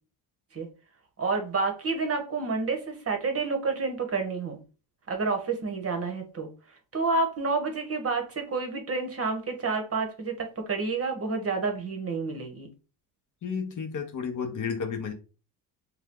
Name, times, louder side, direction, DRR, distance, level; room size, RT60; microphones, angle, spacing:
voice 1, 1.2-4.6 5.1-12.7, right 4 dB, 30° right, 4 dB, 0.9 m, -29 dB
voice 2, 13.4-15.1, left 6 dB, 40° left, 4 dB, 0.8 m, -32 dB
2.8 x 2.3 x 3.5 m, 0.33 s
supercardioid pair, 70°, 49 cm